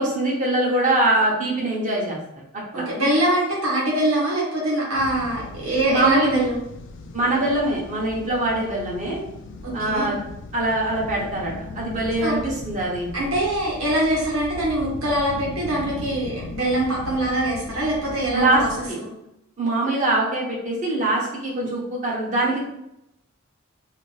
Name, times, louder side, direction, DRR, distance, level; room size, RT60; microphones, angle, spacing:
voice 1, 0.0-2.2 2.7-2.8 5.9-6.4 7.1-9.2 9.7-10.2 10.5-13.1 18.3-19.0 19.6-22.6, right 2 dB, 35° right, -4 dB, 0.9 m, -23 dB
voice 2, 2.7-6.6 9.6-10.2 12.2-12.3 13.1-18.7 19.0-19.1, right 1 dB, 85° right, -5 dB, 1.2 m, -23 dB
sound 1, 5.0-18.9, left 3 dB, 60° left, 0.3 m, -38 dB
2.8 x 2.6 x 3.2 m, 0.84 s
head